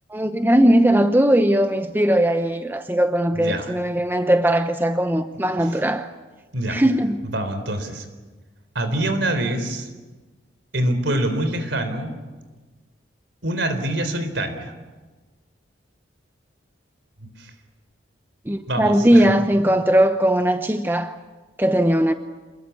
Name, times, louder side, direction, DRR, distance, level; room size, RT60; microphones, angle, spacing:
voice 1, 0.1-6.1 6.7-7.3 18.5-21.2 21.6-22.1, right 1 dB, 10° right, 0.8 m, -19 dB
voice 2, 3.3-3.7 6.5-6.8 7.3-8.1 8.7-9.9 10.7-12.1 13.4-14.7 17.4-17.5 18.7-19.2, right 1 dB, 70° right, 3.9 m, -25 dB
27.5 x 21.5 x 8.5 m
head